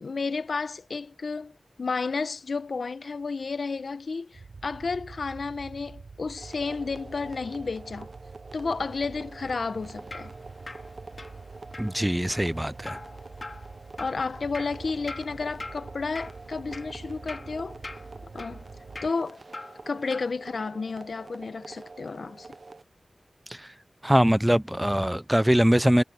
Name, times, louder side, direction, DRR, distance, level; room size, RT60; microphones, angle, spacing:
voice 1, 0.0-8.1 8.5-10.3 14.0-17.8 18.3-18.6 19.0-19.4 19.9-22.5, left 4 dB, 75° left, 1.0 m, -32 dB
sound 1, 4.3-19.1, right 4 dB, 80° right, 3.7 m, -46 dB
sound 2, 6.4-22.8, right 3 dB, 60° right, 0.9 m, -47 dB
Drip, 9.7-20.3, left 2 dB, 45° left, 2.4 m, -44 dB
voice 2, 11.8-13.0 23.5-23.7 24.0-26.0, equal, 5° right, 0.4 m, -22 dB
wide cardioid pair, 75°, 0 cm